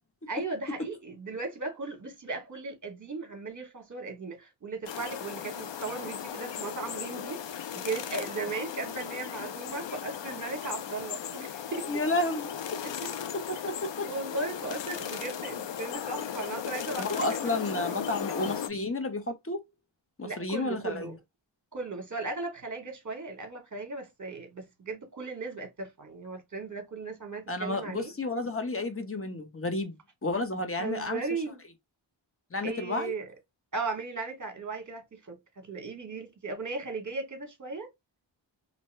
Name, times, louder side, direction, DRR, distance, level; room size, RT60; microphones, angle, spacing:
voice 1, 0.3-7.4 7.7-11.9 12.8-12.9 14.1-17.6 17.9-18.1 20.2-21.1 21.7-28.1 30.8-31.6 32.6-33.3 33.7-37.9, right 3 dB, 40° right, 1.0 m, -37 dB
sound 1, 4.9-18.7, left 9 dB, 70° left, 0.5 m, -37 dB
voice 2, 11.9-12.8 13.3-14.1 17.0-19.6 20.2-21.1 27.5-30.0 30.2-31.2 32.5-33.1, left 2 dB, 30° left, 0.8 m, -31 dB
2.7 x 2.1 x 3.1 m
wide cardioid pair, 55°, 46 cm